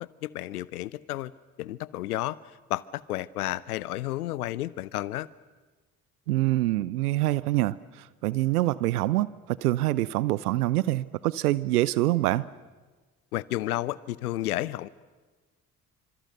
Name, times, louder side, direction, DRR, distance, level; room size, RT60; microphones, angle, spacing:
voice 1, 0.0-1.3 1.6-2.4 2.7-5.3 13.3-14.9, left 15 dB, 80° left, 21 dB, 0.7 m, -32 dB
voice 2, 6.3-7.7 8.2-12.5, right 16 dB, 80° right, 20 dB, 0.7 m, -25 dB
28.0 x 26.0 x 6.6 m, 1.3 s
figure-of-eight pair, 45°, 44 cm